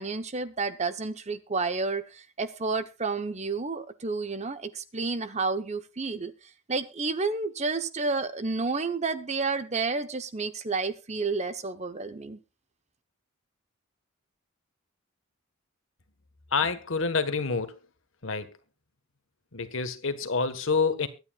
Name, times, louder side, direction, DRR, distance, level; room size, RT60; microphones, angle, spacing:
voice 1, 0.0-6.3 6.7-12.4, right 4 dB, 30° right, 0.9 m, -30 dB
voice 2, 16.5-17.7 18.2-18.5 19.5-21.1, left 4 dB, 60° left, 1.5 m, -27 dB
23.5 x 9.6 x 2.4 m
head